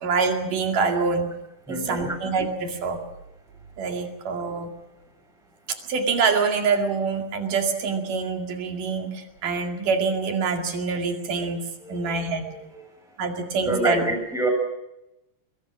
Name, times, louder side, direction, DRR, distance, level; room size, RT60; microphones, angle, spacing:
voice 1, 0.0-1.3 1.7-3.0 3.8-4.7 5.9-11.6 11.9-12.5 13.2-14.0, right 4 dB, 85° right, 3 dB, 3.9 m, -25 dB
voice 2, 1.7-2.2 11.8-12.9 13.7-14.5, right 1 dB, ahead, 3 dB, 6.6 m, -28 dB
24.0 x 23.0 x 6.3 m, 0.90 s
omnidirectional pair, 3.7 m